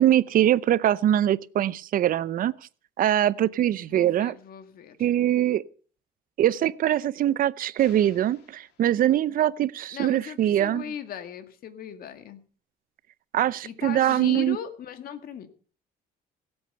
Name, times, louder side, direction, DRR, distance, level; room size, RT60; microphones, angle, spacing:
voice 1, 0.0-2.5 3.0-4.3 5.0-5.6 6.4-10.9 13.3-14.6, right 12 dB, 55° right, 0.7 m, -23 dB
voice 2, 3.9-5.0 9.9-12.4 13.6-15.5, left 8 dB, 60° left, 2.0 m, -38 dB
sound 1, 7.8-9.5, left 7 dB, 85° left, 3.0 m, -56 dB
17.5 x 8.1 x 6.8 m
cardioid pair, 110°, 17 cm